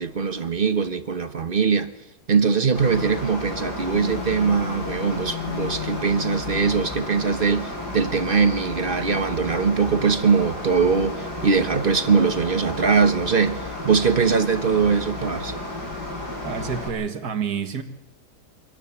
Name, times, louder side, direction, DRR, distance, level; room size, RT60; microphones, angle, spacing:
voice 1, 0.0-1.9 2.3-15.6, right 5 dB, 40° right, 1.0 m, -21 dB
Mechanical fan, 2.7-16.9, left 2 dB, 80° left, 7.2 m, -33 dB
Telephone, 3.9-7.0, left 9 dB, 40° left, 1.7 m, -35 dB
voice 2, 16.4-17.8, right 7 dB, 70° right, 2.1 m, -28 dB
25.5 x 18.0 x 7.1 m
omnidirectional pair, 1.8 m